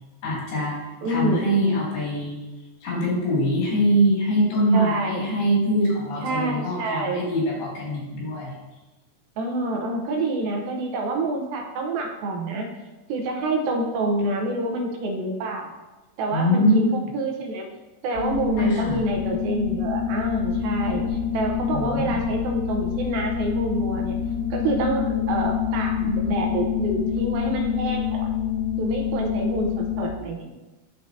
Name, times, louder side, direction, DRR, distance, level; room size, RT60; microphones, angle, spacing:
voice 1, 0.2-0.8 1.1-2.4 2.8-8.6 16.3-16.9 18.6-19.0 21.7-22.2, equal, 90° left, -6 dB, 4.6 m, -23 dB
voice 2, 1.0-1.7 4.7-5.3 6.2-7.3 9.4-12.7 13.1-15.7 16.2-17.7 18.0-24.2 24.5-28.3 28.8-30.5, right 2 dB, 75° right, 2 dB, 2.5 m, -27 dB
sound 1, 18.1-30.1, left 8 dB, 55° left, 2.1 m, -26 dB
11.5 x 4.6 x 2.8 m, 1.1 s
omnidirectional pair, 4.4 m